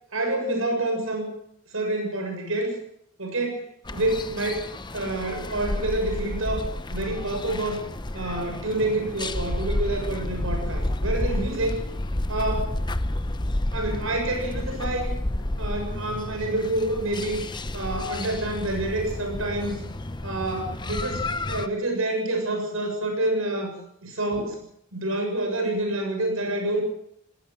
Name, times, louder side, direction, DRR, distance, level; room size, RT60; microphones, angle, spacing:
voice 1, 0.1-1.3 1.7-2.8 3.2-7.8 8.1-11.8 12.3-12.7 13.7-15.1 15.6-17.4 17.7-19.8 20.2-23.7 24.0-24.6 24.9-26.8, right 1 dB, 85° right, 3 dB, 7.3 m, -28 dB
sound 1, 3.8-21.7, left 1 dB, 20° left, 0.9 m, -31 dB
19.0 x 18.5 x 7.7 m, 0.69 s
head